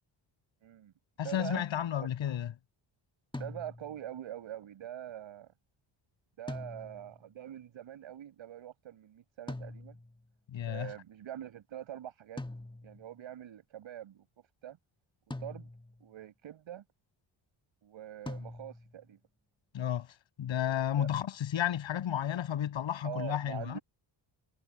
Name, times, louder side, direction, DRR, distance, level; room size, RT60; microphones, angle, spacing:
voice 1, 0.6-0.9 1.2-1.6 2.0-2.1 3.4-5.5 6.4-10.0 10.7-12.4 12.8-14.3 14.6-14.8 15.4-15.7 16.0-16.8 17.8-19.2 21.0-21.1 23.0-23.8, right 11 dB, 80° right, 7.3 m, -44 dB
voice 2, 1.2-2.5 10.5-10.9 19.7-20.1 20.4-23.8, left 10 dB, 80° left, 7.6 m, -32 dB
sound 1, 3.3-4.1 6.5-7.2 9.5-10.3 12.4-13.1 15.3-16.1 18.3-19.0, left 2 dB, 10° left, 1.6 m, -43 dB
cardioid pair, 85°, 46 cm